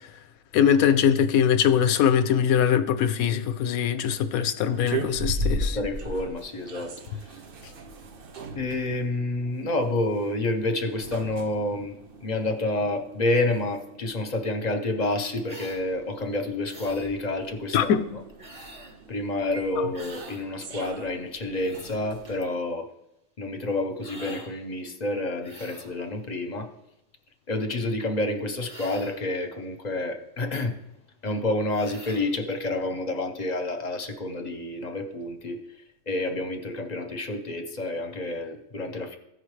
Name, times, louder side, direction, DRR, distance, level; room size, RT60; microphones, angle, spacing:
voice 1, 0.5-5.8 17.7-18.0, left 8 dB, 85° left, 11 dB, 1.0 m, -22 dB
sound 1, 4.7-22.4, right 1 dB, 50° right, 0.7 m, -38 dB
voice 2, 5.6-6.9 7.2-7.3 8.5-18.0 19.1-22.9 23.4-26.7 27.5-30.8 31.2-35.6 36.1-39.2, left 2 dB, 40° left, 5 dB, 0.7 m, -29 dB
sound 2, 15.4-15.8 16.7-17.1 18.4-19.0 19.9-20.4 21.3-22.0 24.0-24.5 25.4-26.0 28.6-29.2 31.7-32.3, equal, 25° right, 1.3 m, -45 dB
14.5 x 5.0 x 3.2 m, 0.87 s
omnidirectional pair, 1.5 m